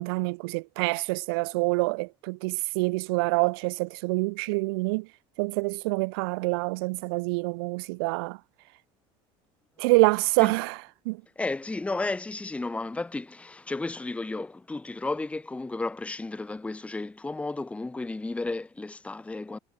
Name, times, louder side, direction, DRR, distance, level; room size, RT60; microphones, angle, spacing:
voice 1, 0.0-5.1 5.4-8.4 9.8-10.8 11.1-11.2, right 27 dB, 85° right, 0.5 m, -26 dB
voice 2, 11.4-19.6, left 2 dB, 10° left, 1.2 m, -33 dB
supercardioid pair, 110°, 12 cm